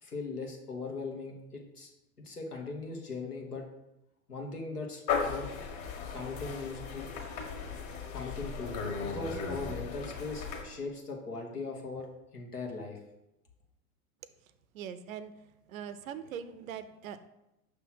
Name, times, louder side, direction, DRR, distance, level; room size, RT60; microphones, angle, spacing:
voice 1, 0.0-1.9 2.2-3.7 4.3-5.5 6.1-7.1 8.1-12.1 12.3-13.0, left 3 dB, 90° left, 1 dB, 1.3 m, -39 dB
sound 1, 5.1-10.6, left 5 dB, 40° left, 1.5 m, -36 dB
voice 2, 14.7-15.3 15.7-17.3, right 8 dB, 65° right, 13 dB, 0.6 m, -41 dB
6.0 x 3.4 x 5.7 m, 0.91 s
figure-of-eight pair, 85°, 45 cm